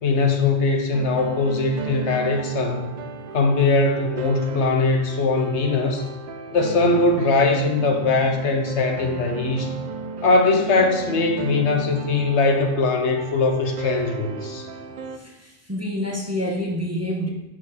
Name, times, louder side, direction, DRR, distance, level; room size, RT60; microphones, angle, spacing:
voice 1, 0.0-2.9 3.3-6.1 6.5-9.7 10.2-14.7, left 3 dB, 70° left, 4 dB, 1.1 m, -21 dB
sound 1, 0.9-15.2, right 4 dB, 50° right, 0.5 m, -34 dB
voice 2, 15.1-17.3, equal, 15° right, -1 dB, 1.1 m, -28 dB
11.5 x 4.5 x 4.2 m, 0.98 s
omnidirectional pair, 1.2 m